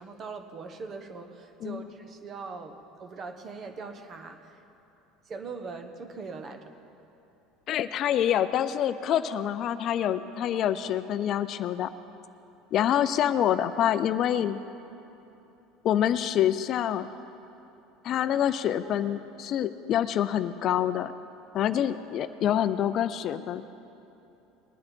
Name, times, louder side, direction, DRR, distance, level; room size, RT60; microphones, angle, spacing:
voice 1, 0.0-4.6 5.3-6.7, right 4 dB, 35° right, 7 dB, 1.1 m, -41 dB
voice 2, 7.7-11.9 12.7-14.6 15.8-17.1 18.0-21.1 21.5-23.6, left 10 dB, 45° left, 12 dB, 0.4 m, -26 dB
20.5 x 9.6 x 4.4 m, 2.9 s
supercardioid pair, 120°, 0 cm